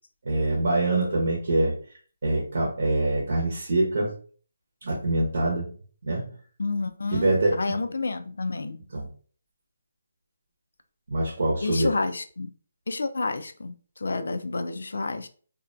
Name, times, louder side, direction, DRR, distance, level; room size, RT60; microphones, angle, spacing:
voice 1, 0.2-1.8 2.2-4.1 4.8-5.7 6.0-6.3 7.1-7.5 8.9-9.1 11.1-11.9, right 2 dB, 60° right, 0.8 m, -24 dB
voice 2, 6.6-8.8 11.6-12.5 12.9-15.3, left 3 dB, 75° left, 0.4 m, -30 dB
2.4 x 2.1 x 2.5 m
hypercardioid pair, 165°, 0 cm